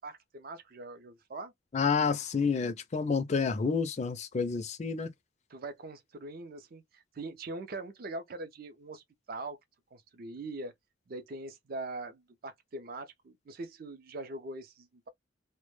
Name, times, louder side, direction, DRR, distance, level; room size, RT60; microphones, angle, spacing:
voice 1, 0.0-1.5 5.5-9.6 9.9-10.7 11.1-15.1, right 2 dB, 50° right, 0.4 m, -42 dB
voice 2, 1.7-5.1, left 5 dB, 35° left, 0.4 m, -29 dB
2.1 x 2.0 x 3.0 m
head